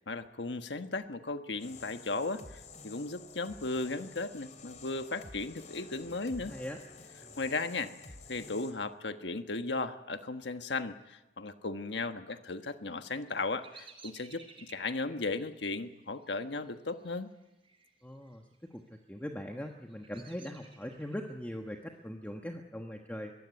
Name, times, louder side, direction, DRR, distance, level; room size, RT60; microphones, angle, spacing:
voice 1, 0.1-6.5 7.4-7.9 8.3-17.3, left 3 dB, 90° left, 8 dB, 1.4 m, -36 dB
sound 1, 1.6-8.7, left 4 dB, 45° left, 3.0 m, -51 dB
voice 2, 6.4-6.8 7.2-7.3 18.0-23.3, equal, 10° left, 2 dB, 1.3 m, -41 dB
Bird vocalization bird call bird song, 12.9-17.9 18.2-18.8 19.3-21.3, right 4 dB, 30° right, 5.6 m, -56 dB
22.5 x 17.0 x 9.4 m, 0.99 s
head